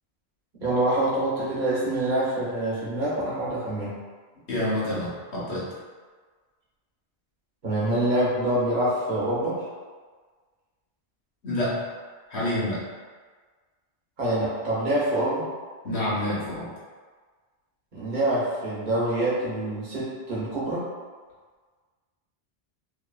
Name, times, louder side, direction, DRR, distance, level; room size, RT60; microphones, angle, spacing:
voice 1, 0.6-4.0 7.6-9.6 14.2-15.5 17.9-20.9, right 1 dB, 50° right, -9 dB, 0.9 m, -26 dB
voice 2, 4.5-5.7 11.4-11.8 12.3-12.8 15.8-16.7, left 1 dB, 85° left, -8 dB, 1.2 m, -27 dB
2.7 x 2.4 x 2.2 m, 1.5 s
omnidirectional pair, 1.1 m